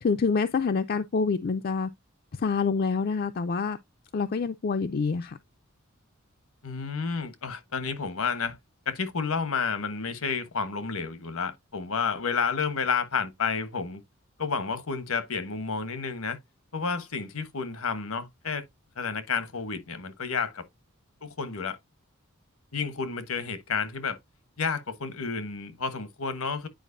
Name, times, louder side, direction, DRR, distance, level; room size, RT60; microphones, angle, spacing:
voice 1, 0.0-1.9 2.3-3.8 4.1-5.4, left 5 dB, 45° left, 0.4 m, -26 dB
voice 2, 6.6-8.6 8.9-14.0 14.4-16.4 16.7-18.6 19.0-20.6 21.2-21.8 22.7-24.2 24.6-26.7, left 5 dB, 85° left, 1.1 m, -30 dB
9.2 x 5.0 x 2.6 m
head